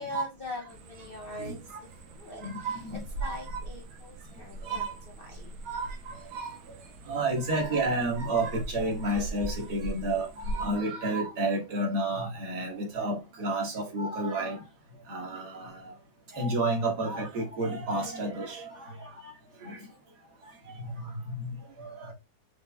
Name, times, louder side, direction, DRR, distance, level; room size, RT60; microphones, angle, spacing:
voice 1, 0.0-1.8 2.1-5.6, left 1 dB, 75° left, 0.5 m, -42 dB
sound 1, 0.7-10.8, right 1 dB, 90° right, 1.5 m, -41 dB
voice 2, 1.4-1.8 2.4-3.6 4.6-4.9 5.7-6.8 7.1-14.6 15.1-15.9 16.3-19.3 19.6-19.9 20.7-22.1, right 2 dB, 55° right, 1.9 m, -31 dB
5.3 x 3.1 x 2.3 m
omnidirectional pair, 2.1 m